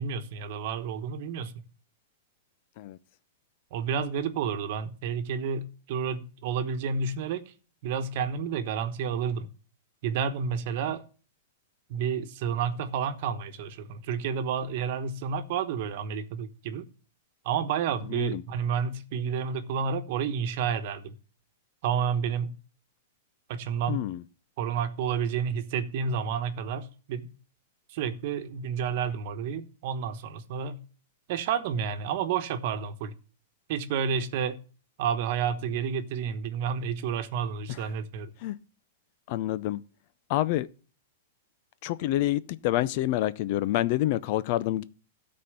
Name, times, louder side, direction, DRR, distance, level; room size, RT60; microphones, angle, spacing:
voice 1, 0.0-1.5 3.7-7.5 7.8-9.5 10.0-11.0 11.9-16.9 17.4-21.1 21.8-22.5 23.5-24.0 24.6-27.3 27.9-30.8 31.3-33.1 33.7-34.6 35.0-38.3, right 7 dB, 55° right, 1.2 m, -30 dB
voice 2, 18.1-18.4 23.9-24.2 38.4-38.6 39.3-39.8 40.3-40.7 41.8-44.8, left 14 dB, 50° left, 0.6 m, -27 dB
12.5 x 4.4 x 8.0 m
hypercardioid pair, 130°, 0 cm